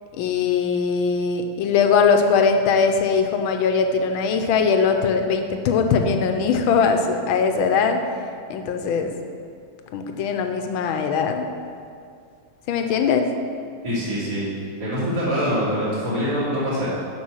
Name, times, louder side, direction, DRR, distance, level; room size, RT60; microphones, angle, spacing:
voice 1, 0.2-8.0 8.5-9.1 9.9-11.5 12.7-13.2, left 5 dB, 75° left, 5 dB, 1.5 m, -20 dB
voice 2, 13.8-14.5 14.8-16.9, equal, 45° right, -13 dB, 3.1 m, -24 dB
7.4 x 6.2 x 6.3 m, 2.3 s
omnidirectional pair, 2.4 m